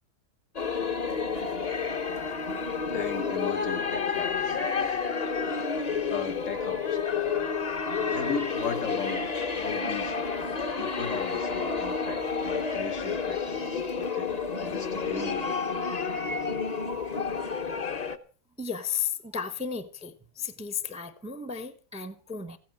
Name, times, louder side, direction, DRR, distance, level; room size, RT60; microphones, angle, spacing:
sound 1, 0.6-18.2, left 5 dB, 30° left, 0.9 m, -30 dB
voice 1, 2.9-5.0 6.1-7.0 8.0-9.2 9.5-10.2 10.8-15.5, left 6 dB, 55° left, 1.5 m, -37 dB
voice 2, 18.6-22.6, left 7 dB, 5° right, 0.7 m, -34 dB
15.5 x 9.4 x 7.6 m
omnidirectional pair, 1.7 m